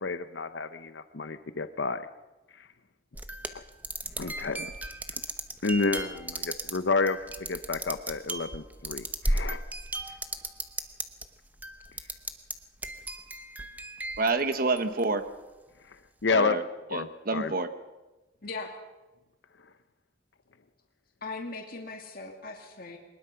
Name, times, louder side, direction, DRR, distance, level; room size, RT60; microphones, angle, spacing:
voice 1, 0.0-2.1 4.2-4.7 5.6-7.2 7.5-9.6 16.2-17.5, left 4 dB, 65° left, 11 dB, 0.7 m, -30 dB
sound 1, 3.1-11.3 11.6-12.5 12.8-15.2, right 1 dB, 10° right, 0.9 m, -35 dB
voice 2, 14.2-15.2 16.3-16.6 16.9-17.7, right 3 dB, 50° right, 10 dB, 1.1 m, -28 dB
voice 3, 18.4-18.7 21.2-23.0, left 3 dB, 50° left, 2 dB, 2.2 m, -39 dB
22.5 x 20.0 x 5.7 m, 1.1 s
head